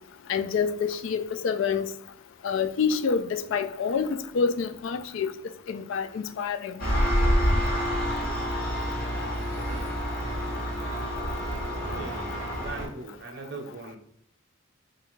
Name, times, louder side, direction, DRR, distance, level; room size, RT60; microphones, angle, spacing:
voice 1, 0.3-1.9 2.4-5.3 5.7-6.8, left 6 dB, 70° left, 0.3 m, -27 dB
Engine, 6.8-12.9, equal, 45° left, 1.0 m, -27 dB
voice 2, 9.7-10.0 11.9-14.0, right 3 dB, 55° right, 0.6 m, -40 dB
3.3 x 2.5 x 3.0 m
head